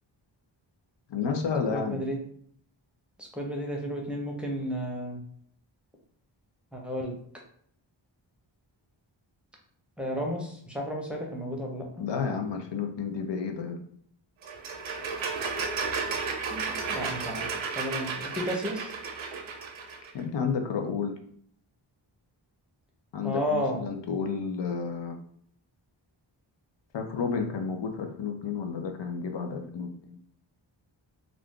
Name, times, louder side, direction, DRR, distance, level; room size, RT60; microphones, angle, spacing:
voice 1, 1.1-2.0 12.0-13.9 20.1-21.1 23.1-25.2 26.9-30.2, left 5 dB, 65° left, 4 dB, 0.6 m, -31 dB
voice 2, 1.7-2.2 3.2-5.2 6.7-7.2 10.0-12.0 16.5-17.5 17.8-18.9 23.2-23.8, equal, ahead, -2 dB, 0.7 m, -32 dB
sound 1, 14.4-20.1, right 5 dB, 80° right, 0.7 m, -33 dB
2.5 x 2.4 x 3.5 m, 0.63 s
wide cardioid pair, 85°, 47 cm